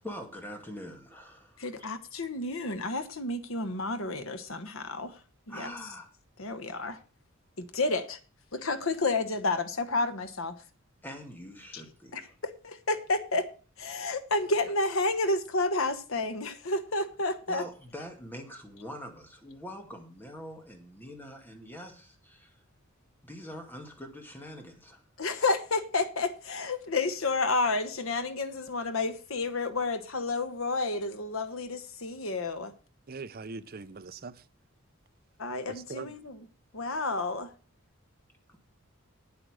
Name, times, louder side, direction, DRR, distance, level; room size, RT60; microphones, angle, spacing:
voice 1, 0.0-1.7 5.5-6.1 11.0-12.3 17.5-22.6 23.2-25.0 38.5-38.6, equal, 10° left, 2.2 m, -44 dB
voice 2, 1.6-5.2 5.5-6.0 6.4-7.0 7.7-8.2 8.5-10.6 11.7-11.8 12.1-12.3 12.6-13.5 13.8-17.7 25.2-32.7 35.4-36.4 36.7-37.5, left 3 dB, 70° left, 1.3 m, -30 dB
voice 3, 33.1-34.4 35.7-36.1, right 4 dB, 45° right, 0.6 m, -41 dB
8.9 x 8.5 x 6.3 m
head